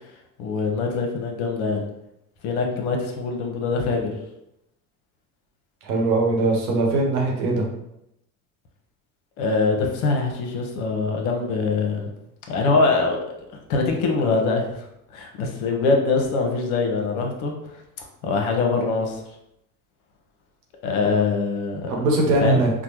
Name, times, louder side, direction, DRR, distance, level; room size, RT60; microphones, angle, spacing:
voice 1, 0.4-1.9 2.4-4.1 9.4-12.1 12.5-13.2 13.7-14.9 15.1-17.5 18.2-19.2 20.8-21.9 22.4-22.6, left 4 dB, 65° left, 2 dB, 0.9 m, -23 dB
voice 2, 5.8-7.7 21.9-22.7, right 2 dB, 75° right, 0 dB, 1.0 m, -21 dB
4.4 x 2.2 x 2.9 m, 0.83 s
hypercardioid pair, 65°, 45 cm